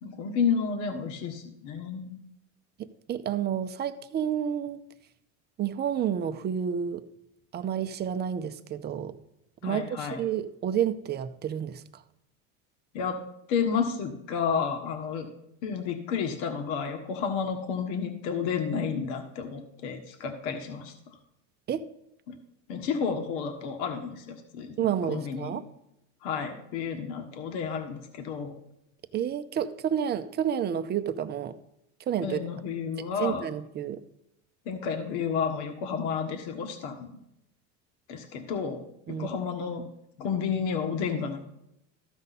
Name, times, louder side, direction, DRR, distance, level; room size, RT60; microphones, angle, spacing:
voice 1, 0.0-2.2 9.6-10.2 12.9-13.2 13.5-15.3 15.6-20.9 22.3-22.4 22.7-24.7 25.1-25.6 26.2-28.5 32.2-33.4 34.6-37.2 38.1-39.8 40.2-41.4, left 6 dB, 65° left, 5 dB, 1.5 m, -31 dB
voice 2, 3.1-4.8 5.6-7.0 7.5-9.2 9.6-11.8 21.7-21.9 24.8-25.6 29.1-31.5 32.1-32.4 33.2-34.0 39.1-39.3, right 9 dB, 25° right, 11 dB, 0.6 m, -30 dB
14.0 x 5.3 x 4.1 m, 0.81 s
supercardioid pair, 120°, 37 cm